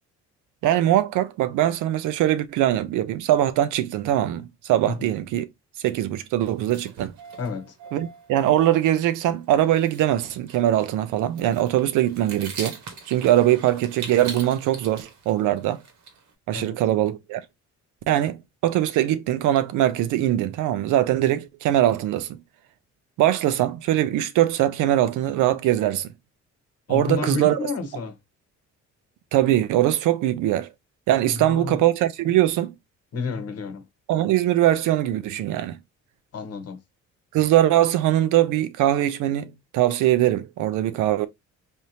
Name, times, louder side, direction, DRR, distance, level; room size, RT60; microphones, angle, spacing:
voice 1, 0.6-5.5 5.8-7.1 7.9-12.8 13.1-15.8 16.5-17.4 18.1-22.4 23.2-26.1 26.9-27.6 29.3-30.7 31.1-32.7 34.1-35.8 37.3-41.3, right 13 dB, 90° right, 0.5 m, -22 dB
sound 1, 6.5-8.8 9.1-9.2 9.4-9.5 9.8-10.0 10.4-16.3, right 5 dB, 70° right, 1.1 m, -41 dB
voice 2, 7.4-7.8 16.5-16.8 26.9-28.2 31.3-31.8 33.1-33.9 36.3-36.8, left 4 dB, 55° left, 0.9 m, -31 dB
3.5 x 2.7 x 2.7 m
cardioid pair, 90°, 30 cm